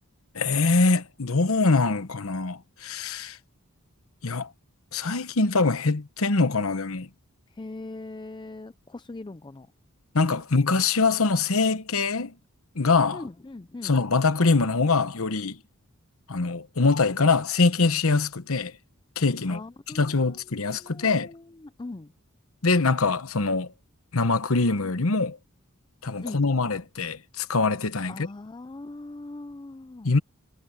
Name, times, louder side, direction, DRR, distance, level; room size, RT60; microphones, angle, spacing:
voice 1, 0.3-3.4 4.2-4.5 4.9-7.1 10.1-12.3 12.7-13.2 13.8-15.6 16.3-18.7 19.2-19.6 19.9-21.3 22.6-23.7 24.1-25.4 26.0-28.3 30.0-30.2, left 3 dB, 65° left, 1.1 m, -23 dB
voice 2, 7.6-9.7 13.1-14.0 19.5-20.3 20.7-22.1 26.2-26.4 28.1-30.1, left 2 dB, 20° left, 0.4 m, -40 dB
head